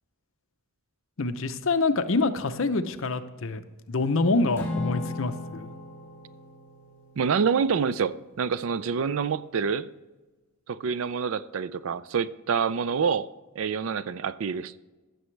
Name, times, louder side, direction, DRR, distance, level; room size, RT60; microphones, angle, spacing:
voice 1, 1.2-3.6 3.9-5.7, left 3 dB, 65° left, 0.7 m, -26 dB
Acoustic guitar / Strum, 4.5-9.0, left 2 dB, 10° left, 2.4 m, -38 dB
voice 2, 7.2-9.9 10.7-13.3 13.6-14.8, right 6 dB, 65° right, 0.4 m, -27 dB
15.5 x 6.9 x 3.3 m
head